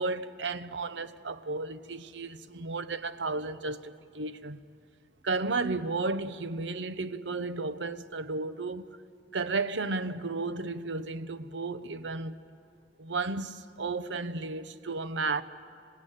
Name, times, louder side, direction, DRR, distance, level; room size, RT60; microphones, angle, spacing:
voice 1, 0.0-4.6 5.2-8.9 9.3-12.4 13.0-15.4, right 3 dB, 85° right, 0.9 m, -33 dB
27.0 x 17.0 x 9.1 m
head